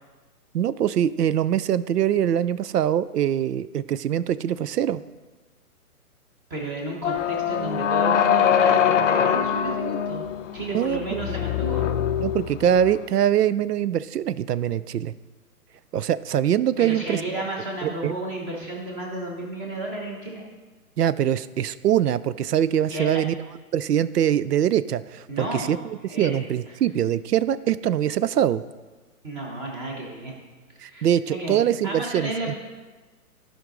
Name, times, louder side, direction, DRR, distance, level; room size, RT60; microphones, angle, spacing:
voice 1, 0.5-5.0 10.7-11.2 12.2-15.1 15.9-17.2 17.8-18.1 21.0-23.3 23.7-28.6 30.8-32.5, right 10 dB, 90° right, 16 dB, 0.6 m, -23 dB
voice 2, 6.5-10.3 10.5-11.9 16.8-20.4 22.9-23.2 25.3-26.3 26.7-26.8 29.2-30.4 30.7-32.5, right 1 dB, 10° right, -1 dB, 0.8 m, -32 dB
sound 1, 7.0-13.0, left 8 dB, 55° left, 0.5 m, -23 dB
14.0 x 5.2 x 3.8 m, 1.3 s
hypercardioid pair, 155°, 46 cm